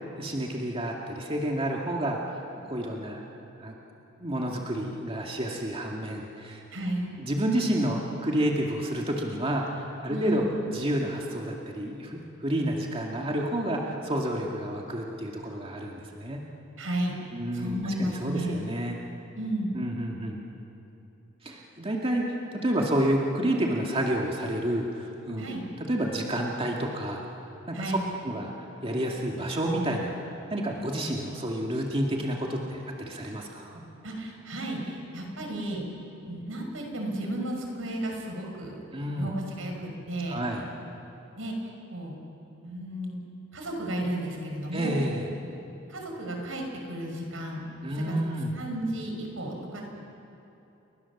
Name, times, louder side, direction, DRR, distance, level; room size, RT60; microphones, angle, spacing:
voice 1, 0.2-2.4 2.7-3.2 3.6-3.7 4.2-6.6 7.2-16.5 17.3-19.0 19.7-20.4 21.4-25.4 25.9-27.2 27.7-28.0 28.2-28.5 28.8-30.2 30.5-33.8 38.9-39.3 40.3-40.6 44.7-45.3 47.8-48.6, right 1 dB, 30° right, -1 dB, 2.2 m, -29 dB
voice 2, 6.7-7.1 10.1-10.5 16.8-17.1 17.5-18.6 19.3-19.7 25.4-25.6 27.7-28.0 34.0-35.8 36.2-38.8 39.2-40.4 41.4-41.5 41.9-42.2 42.6-43.2 43.5-45.0 45.9-47.6 48.0-48.2 48.5-49.8, right 1 dB, 85° right, 1 dB, 5.7 m, -33 dB
30.0 x 23.0 x 7.3 m, 2.9 s
head